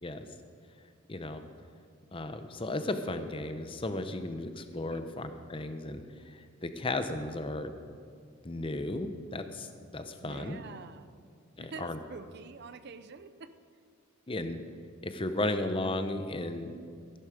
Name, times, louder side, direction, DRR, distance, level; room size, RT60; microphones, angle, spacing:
voice 1, 1.1-1.4 2.1-7.7 8.4-10.6 11.6-12.0 14.3-14.7 15.0-16.8, left 2 dB, 25° left, 9 dB, 0.7 m, -35 dB
voice 2, 10.2-11.1 11.6-13.5, right 4 dB, 50° right, 12 dB, 0.5 m, -46 dB
15.5 x 11.5 x 5.1 m, 2.2 s
head